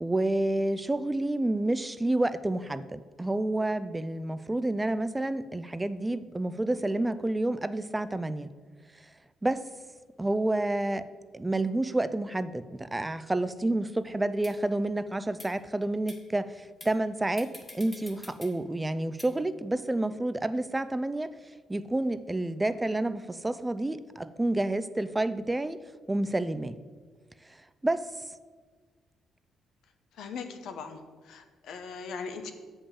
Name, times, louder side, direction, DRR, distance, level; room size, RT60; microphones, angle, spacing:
voice 1, 0.0-8.5 9.4-9.7 10.2-11.1 11.3-21.3 21.7-25.8 26.1-26.8 27.8-28.3, right 2 dB, 15° right, 13 dB, 0.4 m, -29 dB
sound 1, 14.4-14.5 15.3-15.5 16.1-16.2 16.8-17.0 17.4-18.5 19.2-19.3, left 1 dB, 20° left, 1.5 m, -46 dB
voice 2, 30.1-32.5, left 5 dB, 80° left, 7 dB, 0.9 m, -40 dB
7.0 x 5.3 x 7.1 m, 1.5 s
cardioid pair, 90°, 0 cm